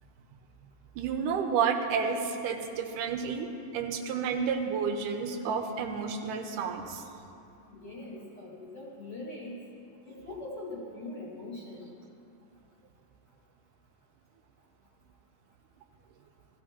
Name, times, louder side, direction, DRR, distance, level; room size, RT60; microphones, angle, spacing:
voice 1, 1.0-3.5 3.7-7.1, right 6 dB, 85° right, 5 dB, 2.3 m, -30 dB
voice 2, 7.7-9.6 10.0-11.9, left 2 dB, 40° left, -5 dB, 2.0 m, -42 dB
16.5 x 14.5 x 2.9 m, 2.6 s
omnidirectional pair, 3.7 m